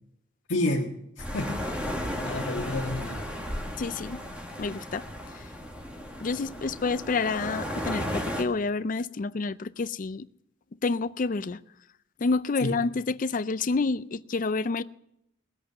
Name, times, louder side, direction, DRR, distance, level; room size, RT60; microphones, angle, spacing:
voice 1, 0.5-1.9 2.2-3.2 12.6-12.8, left 1 dB, 75° left, 1.6 m, -30 dB
sound 1, 1.2-8.4, equal, 5° right, 1.5 m, -34 dB
voice 2, 3.8-4.2 4.6-5.1 6.2-10.2 10.8-11.6 12.2-14.8, left 4 dB, 45° left, 0.4 m, -28 dB
19.0 x 8.2 x 6.8 m
head